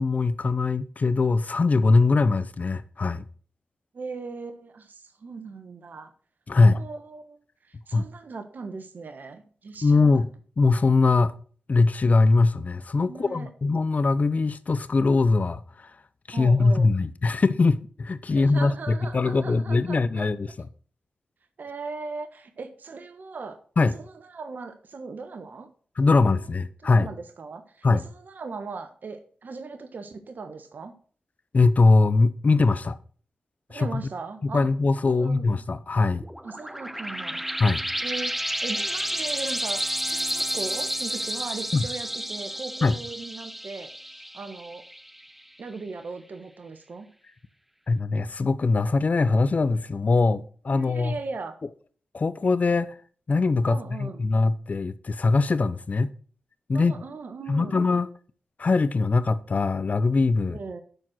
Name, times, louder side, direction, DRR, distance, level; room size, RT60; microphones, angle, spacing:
voice 1, 0.0-3.2 6.5-6.8 7.9-8.0 9.8-10.3 10.6-11.3 11.7-15.9 16.3-20.7 23.8-23.9 26.0-27.1 27.8-28.0 31.5-33.0 33.7-34.0 34.4-36.2 37.6-37.8 41.7-41.8 42.8-43.0 47.9-51.1 52.1-52.9 53.3-56.1 56.7-57.0 57.5-58.1 58.6-60.6, left 3 dB, 50° left, 0.7 m, -22 dB
voice 2, 3.9-6.1 6.6-10.1 13.1-13.5 16.3-17.0 18.3-20.3 21.6-23.6 23.9-25.7 26.1-26.2 26.8-30.9 33.7-34.7 35.1-35.5 36.4-37.4 38.0-38.3 38.6-43.9 44.3-44.8 45.6-47.1 50.7-51.6 53.7-54.3 56.7-57.9 60.5-60.8, right 4 dB, 65° right, 1.4 m, -38 dB
sound 1, 36.2-45.4, equal, 5° right, 0.4 m, -31 dB
11.5 x 4.5 x 6.3 m
supercardioid pair, 40°, 3 cm